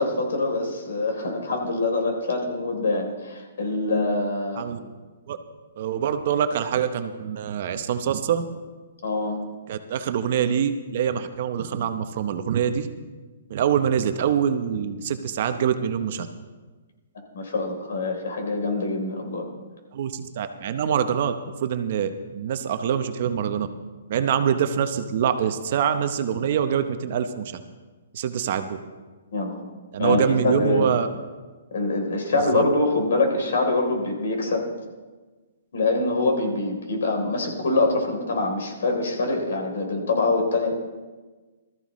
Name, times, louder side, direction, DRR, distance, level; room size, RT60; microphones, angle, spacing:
voice 1, 0.0-4.6 9.0-9.5 17.3-19.5 29.3-29.7 30.0-30.9 31.7-34.7 35.7-40.7, left 2 dB, 70° left, 2 dB, 3.4 m, -24 dB
voice 2, 5.8-8.4 9.7-12.9 13.5-16.3 19.9-21.3 21.6-23.7 24.1-27.6 28.1-28.8 29.9-31.1 32.5-32.6, right 8 dB, 40° right, 8 dB, 0.8 m, -25 dB
19.5 x 14.0 x 3.1 m, 1.3 s
hypercardioid pair, 170°, 0 cm